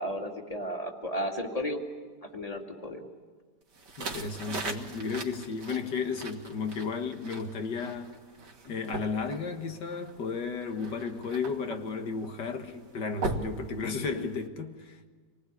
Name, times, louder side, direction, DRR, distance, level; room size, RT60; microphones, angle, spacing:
voice 1, 0.0-1.8 2.2-3.1, equal, 20° left, 2.5 m, -34 dB
sound 1, 3.7-14.5, right 2 dB, 75° right, 2.3 m, -40 dB
voice 2, 4.0-8.2 8.7-15.1, left 5 dB, 90° left, 2.2 m, -34 dB
27.0 x 19.5 x 9.6 m
omnidirectional pair, 1.8 m